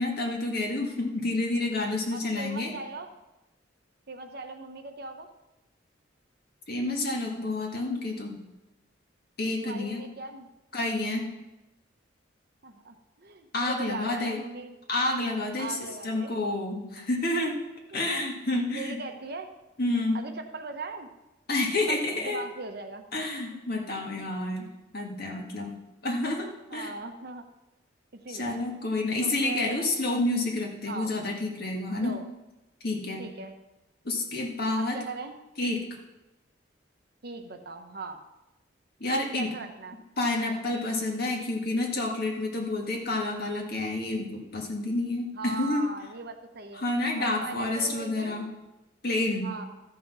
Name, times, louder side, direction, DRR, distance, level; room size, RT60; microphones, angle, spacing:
voice 1, 0.0-2.7 6.7-8.4 9.4-10.0 10.7-11.2 13.5-14.4 14.9-17.6 17.9-19.0 19.8-20.2 21.5-22.4 23.1-24.7 24.9-25.7 26.0-26.9 28.3-32.2 32.8-33.3 34.0-35.0 35.6-35.8 39.0-39.5 40.2-45.9 46.7-48.5 49.0-49.5, left 2 dB, 55° left, 0 dB, 1.9 m, -29 dB
voice 2, 2.1-3.1 4.1-5.3 9.6-10.5 12.6-14.8 15.6-16.4 17.9-18.3 18.5-19.5 20.1-21.1 21.9-23.0 23.5-23.7 26.7-27.5 28.1-28.6 29.2-29.9 30.9-31.1 32.0-32.2 33.2-33.5 34.8-35.3 37.2-38.2 39.1-40.0 45.3-46.8 47.2-48.5 49.4-49.7, right 3 dB, 55° right, 6 dB, 1.0 m, -39 dB
13.0 x 6.0 x 6.2 m, 1.0 s
head